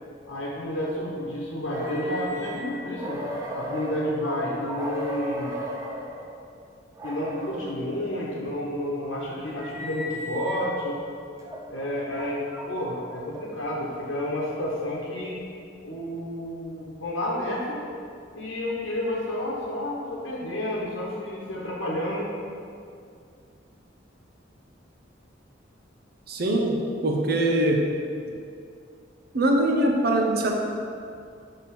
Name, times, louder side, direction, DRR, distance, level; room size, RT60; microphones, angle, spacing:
voice 1, 0.3-3.2 3.5-5.5 7.0-11.0 11.7-15.4 15.8-17.8 18.3-22.3, left 1 dB, 90° left, -6 dB, 1.0 m, -30 dB
sound 1, 1.7-6.3 6.9-7.7 8.5-10.8 11.4-13.8, equal, 15° right, 0.6 m, -37 dB
voice 2, 26.3-27.9 29.3-30.5, right 1 dB, 55° right, 1 dB, 0.7 m, -22 dB
5.7 x 3.7 x 5.9 m, 2.4 s
head